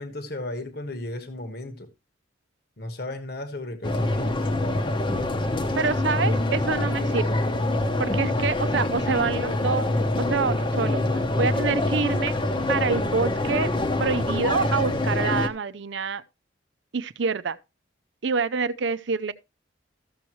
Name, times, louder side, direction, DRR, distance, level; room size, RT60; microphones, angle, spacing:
voice 1, 0.0-1.9 2.8-4.4, left 1 dB, 55° left, 1.3 m, -35 dB
sound 1, 3.8-15.5, left 1 dB, 25° left, 0.9 m, -25 dB
voice 2, 5.8-7.3 8.0-9.9 10.2-12.3 12.7-13.7 14.0-16.2 16.9-17.6 18.2-19.3, right 5 dB, 70° right, 0.6 m, -26 dB
14.0 x 7.0 x 3.0 m
head